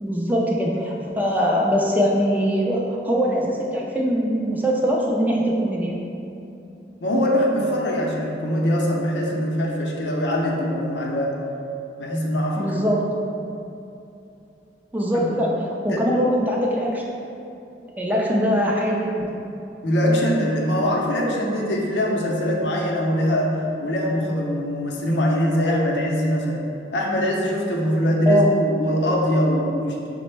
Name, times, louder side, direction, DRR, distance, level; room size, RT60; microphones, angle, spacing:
voice 1, 0.0-6.0 12.6-13.0 14.9-15.5 15.8-17.0 18.0-19.3 28.3-28.5, equal, 10° right, -3 dB, 0.3 m, -22 dB
voice 2, 7.0-11.4 12.0-12.8 15.1-15.3 15.9-16.1 19.8-26.6 26.9-30.1, equal, 75° left, -1 dB, 0.5 m, -22 dB
5.1 x 2.0 x 3.2 m, 2.8 s
head